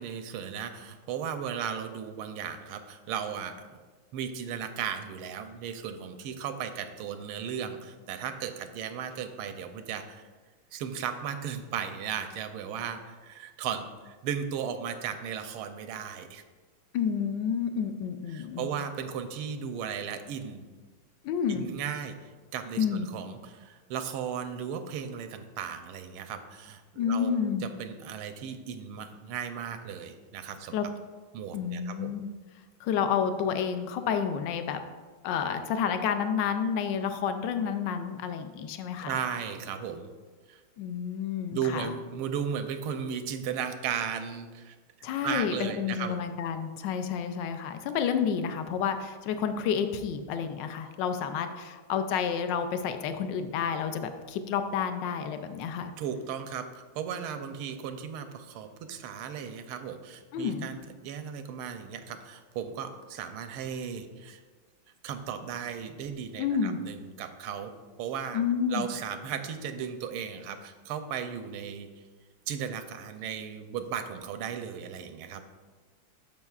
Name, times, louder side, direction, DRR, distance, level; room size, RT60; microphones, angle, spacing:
voice 1, 0.0-3.5 4.1-10.2 10.7-16.4 18.3-20.6 21.5-22.1 22.5-30.8 31.3-32.2 39.0-40.1 40.5-40.6 41.5-44.7 45.2-46.2 56.0-60.8 61.0-64.4 65.0-67.7 68.0-68.4 68.7-71.9 72.5-75.4, right 7 dB, 90° right, 8 dB, 1.5 m, -36 dB
voice 2, 16.9-18.7 21.2-21.7 22.8-23.1 27.0-27.7 30.7-30.9 31.5-32.3 32.8-34.8 35.2-39.1 40.8-41.9 45.0-55.9 60.3-60.7 66.4-66.8 68.3-68.9, left 7 dB, 75° left, 8 dB, 1.1 m, -30 dB
12.0 x 5.3 x 2.4 m, 1.4 s
omnidirectional pair, 2.3 m